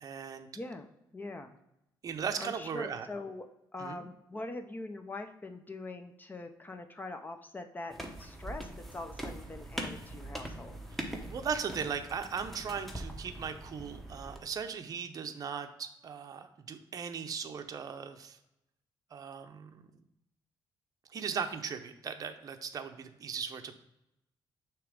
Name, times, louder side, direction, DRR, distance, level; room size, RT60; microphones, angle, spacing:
voice 1, 0.0-0.5 2.0-3.1 3.8-4.1 10.9-18.4 19.1-19.8 21.1-23.8, right 6 dB, 45° right, 7 dB, 0.6 m, -38 dB
voice 2, 0.5-1.6 2.4-3.5 3.7-10.8, left 2 dB, 20° left, 7 dB, 0.5 m, -43 dB
sound 1, 7.9-14.4, right 1 dB, ahead, 0.9 m, -42 dB
6.8 x 3.0 x 4.9 m, 0.85 s
cardioid pair, 110°, 9 cm